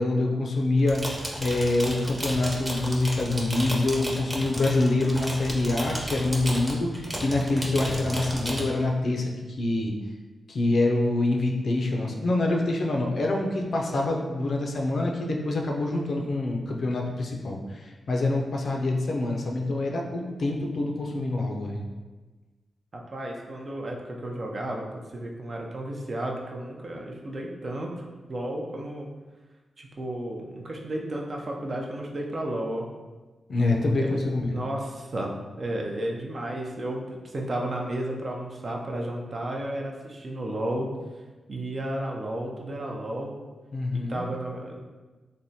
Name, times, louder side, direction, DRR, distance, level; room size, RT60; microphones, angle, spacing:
voice 1, 0.0-9.3 9.6-9.9 10.5-21.8 33.5-34.6 43.7-44.2, left 2 dB, 65° left, 1 dB, 0.4 m, -26 dB
sound 1, 0.8-8.6, right 1 dB, 20° right, 0.8 m, -33 dB
voice 2, 22.9-29.1 29.8-32.9 34.0-34.2 34.5-37.0 37.3-40.9 41.5-43.3 43.9-44.8, right 1 dB, 55° right, 0 dB, 0.5 m, -33 dB
3.4 x 2.1 x 2.7 m, 1.3 s
supercardioid pair, 40°, 0 cm